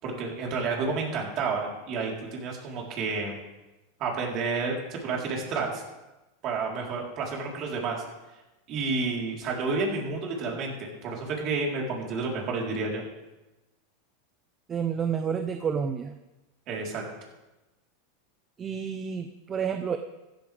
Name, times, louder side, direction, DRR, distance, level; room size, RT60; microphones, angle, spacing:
voice 1, 0.0-3.4 4.0-5.8 6.4-8.0 8.7-13.0 16.7-17.0, right 4 dB, 45° right, -1 dB, 4.1 m, -30 dB
voice 2, 14.7-16.1 18.6-20.0, right 7 dB, 30° right, 7 dB, 0.8 m, -29 dB
15.0 x 12.0 x 3.6 m, 1.1 s
hypercardioid pair, 100°, 0 cm